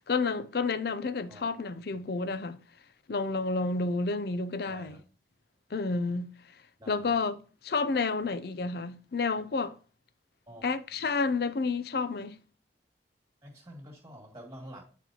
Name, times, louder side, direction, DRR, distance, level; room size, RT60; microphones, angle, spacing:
voice 1, 0.0-2.6 3.1-5.0 5.7-6.3 6.9-9.8 10.6-12.4, left 4 dB, 60° left, 0.5 m, -30 dB
voice 2, 1.3-2.1 4.7-5.0 6.8-7.2 10.5-10.6 13.4-14.8, equal, 20° right, 2.2 m, -48 dB
9.3 x 4.4 x 2.9 m
head